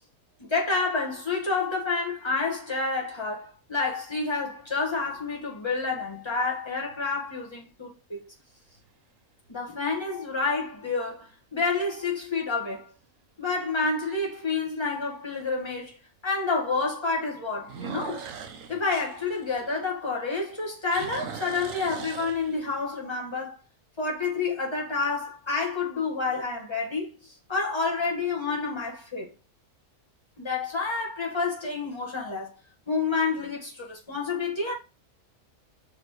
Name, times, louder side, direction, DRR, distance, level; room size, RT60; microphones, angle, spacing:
voice 1, 0.5-8.2 9.5-12.9 13.4-16.0 16.2-18.3 18.7-23.6 24.0-29.3 30.4-32.5 32.9-34.7, left 4 dB, 20° left, 1.6 m, -29 dB
sound 1, 4.0-4.7 5.3-5.4 10.6-11.1 11.6-11.7 12.2-12.3 12.6-12.7 14.2-14.3 17.6-20.2 20.5-22.9, right 7 dB, 65° right, 1.1 m, -40 dB
6.1 x 4.9 x 3.1 m
omnidirectional pair, 1.6 m